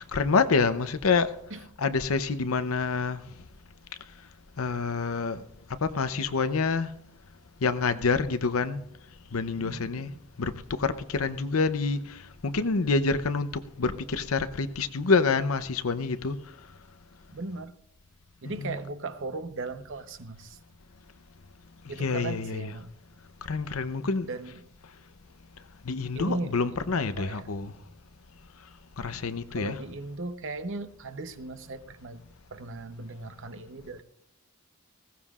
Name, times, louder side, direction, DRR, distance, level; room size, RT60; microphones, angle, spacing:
voice 1, 0.0-3.4 4.6-5.4 5.8-7.0 7.6-8.8 9.3-10.1 10.4-16.7 18.4-18.8 21.8-22.8 23.4-24.3 25.8-27.7 29.0-29.8, left 4 dB, 75° left, 0.7 m, -27 dB
voice 2, 9.6-10.2 17.3-17.7 18.4-20.6 21.9-22.9 24.3-24.6 26.1-26.5 26.9-27.4 29.6-32.2 32.5-34.0, right 3 dB, 60° right, 0.9 m, -37 dB
20.0 x 17.0 x 2.4 m
head